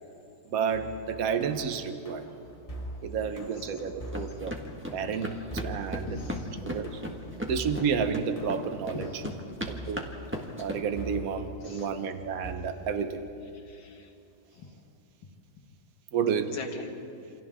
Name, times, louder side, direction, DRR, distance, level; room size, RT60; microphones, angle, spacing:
voice 1, 0.5-2.2 3.0-4.6 4.9-5.4 5.6-6.2 6.6-7.0 7.5-9.2 9.7-10.0 10.6-13.2 16.1-16.6, right 6 dB, 50° right, 8 dB, 1.4 m, -30 dB
sound 1, 0.7-12.5, equal, 20° left, 1.5 m, -43 dB
sound 2, 4.1-10.8, equal, 5° right, 1.4 m, -37 dB
voice 2, 6.0-6.6 8.9-9.3 11.6-11.9 13.7-14.1 14.6-14.7 16.5-16.9, left 5 dB, 90° left, 3 dB, 2.6 m, -41 dB
28.0 x 27.0 x 3.7 m, 2.6 s
omnidirectional pair, 2.1 m